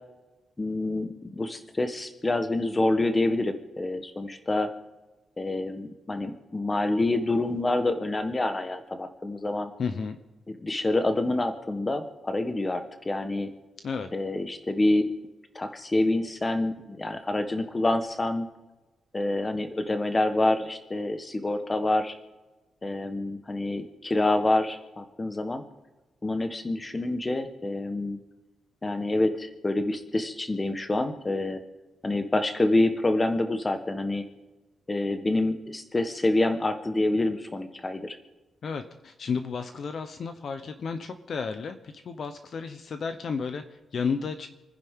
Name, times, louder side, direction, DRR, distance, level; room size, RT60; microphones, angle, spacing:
voice 1, 0.6-4.7 5.4-9.7 10.5-13.5 14.1-15.1 15.5-18.5 19.1-22.1 22.8-25.6 26.2-28.2 28.8-31.6 32.0-34.2 34.9-38.2, left 2 dB, 15° left, 7 dB, 1.3 m, -27 dB
voice 2, 9.8-10.2 13.8-14.1 38.6-44.5, left 5 dB, 50° left, 8 dB, 0.9 m, -32 dB
28.5 x 10.5 x 3.7 m, 1.2 s
wide cardioid pair, 160°, 0 cm